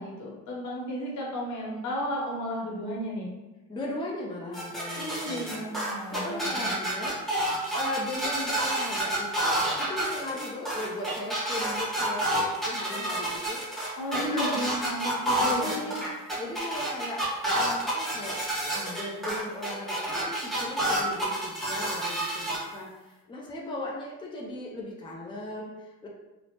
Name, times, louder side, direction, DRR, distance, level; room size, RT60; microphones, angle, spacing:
voice 1, 0.0-3.3 4.9-6.5 13.9-15.9, equal, 75° left, -3 dB, 1.0 m, -33 dB
voice 2, 3.7-5.7 6.1-7.2 7.7-13.6 14.3-14.6 15.6-15.9 16.4-18.4 18.7-26.1, left 1 dB, 15° left, -2 dB, 0.5 m, -37 dB
sound 1, 4.5-22.6, right 1 dB, ahead, 0.9 m, -29 dB
3.0 x 2.0 x 2.9 m, 1.1 s
cardioid pair, 90°, 30 cm